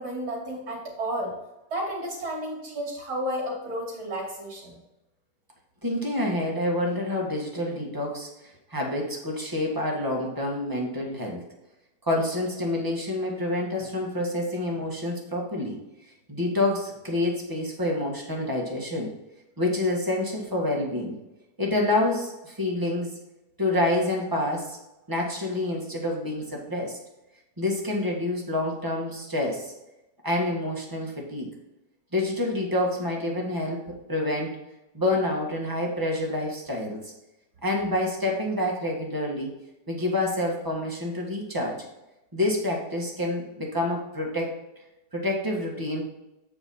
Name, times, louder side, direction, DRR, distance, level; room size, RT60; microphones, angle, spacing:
voice 1, 0.0-1.3 1.7-4.8, right 1 dB, 70° right, -6 dB, 3.0 m, -32 dB
voice 2, 5.8-11.4 12.0-15.8 16.3-19.1 19.6-21.1 21.6-23.1 23.6-24.8 25.1-27.0 27.6-29.7 30.2-31.5 32.1-34.6 34.9-37.1 37.6-39.5 39.9-41.9 42.3-44.5 45.1-46.0, left 1 dB, 15° right, -1 dB, 1.5 m, -27 dB
8.6 x 5.1 x 4.2 m, 0.95 s
omnidirectional pair, 1.8 m